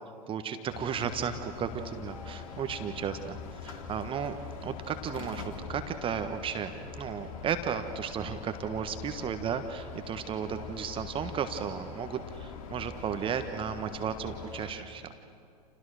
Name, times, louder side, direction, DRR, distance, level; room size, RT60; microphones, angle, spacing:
voice 1, 0.3-4.4 4.6-15.1, right 7 dB, 25° right, 8 dB, 1.4 m, -34 dB
sound 1, 0.7-14.7, left 5 dB, 55° left, 2.9 m, -43 dB
30.0 x 29.0 x 6.6 m, 2.4 s
figure-of-eight pair, 90°, 21 cm